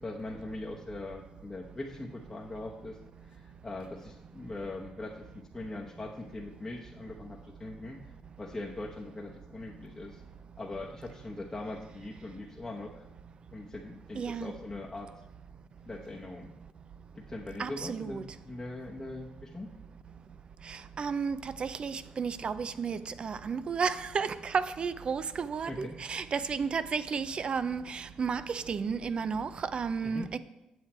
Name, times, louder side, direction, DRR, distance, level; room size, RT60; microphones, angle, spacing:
voice 1, 0.0-3.0 3.2-8.0 8.4-10.2 10.6-13.0 13.5-15.1 15.9-16.5 17.2-19.7 25.7-25.9 30.0-30.3, left 2 dB, 20° left, 0.9 m, -41 dB
voice 2, 14.1-14.5 17.6-18.2 20.7-30.4, right 5 dB, 45° right, 0.4 m, -33 dB
7.9 x 7.4 x 4.3 m
cardioid pair, 90°, 2 cm